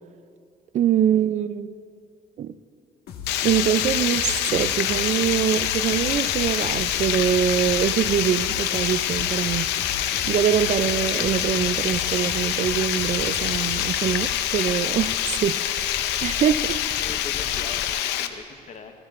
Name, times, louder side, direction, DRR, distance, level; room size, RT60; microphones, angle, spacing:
voice 1, 0.7-1.7 2.4-2.5 3.4-9.7 10.3-16.8, right 9 dB, 45° right, 14 dB, 0.4 m, -24 dB
sound 1, 3.1-14.3, left 5 dB, 70° left, 1.4 m, -37 dB
Water, 3.3-18.3, left 12 dB, 90° left, 0.6 m, -26 dB
sound 2, 5.7-18.0, left 5 dB, 25° left, 0.4 m, -42 dB
voice 2, 17.0-18.9, left 5 dB, 40° left, 6 dB, 1.1 m, -41 dB
17.5 x 15.5 x 2.5 m, 2.4 s
cardioid pair, 110°, 17 cm